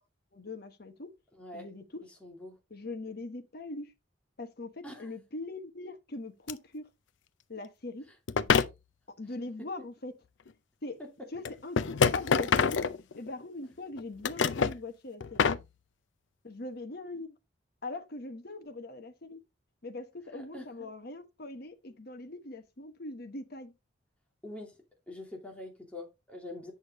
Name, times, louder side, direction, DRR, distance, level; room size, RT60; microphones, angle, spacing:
voice 1, 0.3-1.1 1.5-2.0 2.7-3.9 4.4-6.9 7.5-8.0 9.2-10.1 10.8-11.0 11.3-12.9 13.2-15.5 16.4-17.4 17.8-19.4 19.8-23.7, left 2 dB, 55° left, 1.2 m, -41 dB
voice 2, 2.2-2.6 4.8-5.1 20.3-20.9 24.4-24.7 25.1-26.7, left 2 dB, 5° left, 2.5 m, -44 dB
sound 1, 6.5-6.6 8.3-8.7 10.5-10.6 11.4-13.4 14.0-14.8 15.2-15.6, left 6 dB, 75° left, 0.5 m, -26 dB
8.3 x 6.3 x 3.0 m
head